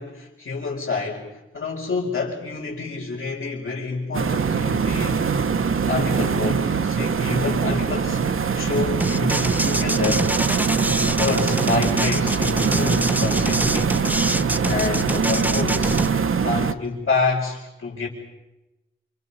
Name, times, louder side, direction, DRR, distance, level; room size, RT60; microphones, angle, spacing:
voice 1, 0.0-8.2 8.5-10.4 10.8-14.1 14.6-16.0 16.4-18.1, left 4 dB, 85° left, -5 dB, 5.5 m, -28 dB
sound 1, 4.1-16.7, right 6 dB, 85° right, 1.1 m, -23 dB
sound 2, 9.0-16.1, right 1 dB, 10° right, 0.9 m, -25 dB
28.5 x 28.5 x 5.7 m, 1.0 s
wide cardioid pair, 80°, 21 cm